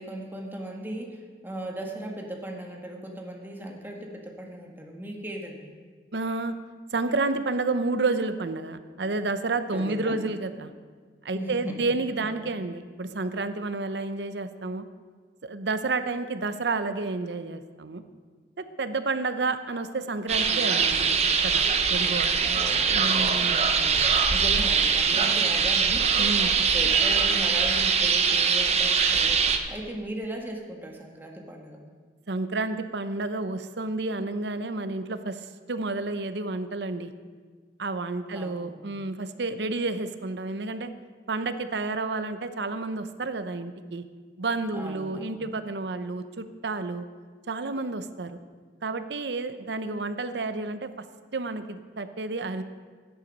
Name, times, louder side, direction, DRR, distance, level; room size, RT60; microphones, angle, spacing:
voice 1, 0.0-5.7 9.7-10.3 11.3-11.8 12.2-12.4 22.4-23.1 23.4-24.0 24.3-26.2 26.6-31.8 38.3-39.0 44.7-45.4, right 1 dB, 10° right, 0 dB, 1.5 m, -38 dB
voice 2, 6.1-6.5 6.9-10.7 11.2-14.9 15.4-18.0 18.6-21.2 21.4-22.4 22.9-23.6 26.2-26.5 32.3-37.1 37.8-40.9 41.3-44.0 44.4-47.0 47.5-48.4 48.8-50.9 51.3-52.6, right 3 dB, 70° right, 10 dB, 0.7 m, -30 dB
sound 1, 20.3-29.6, right 6 dB, 40° right, 0.8 m, -22 dB
13.0 x 9.9 x 5.3 m, 1.5 s
head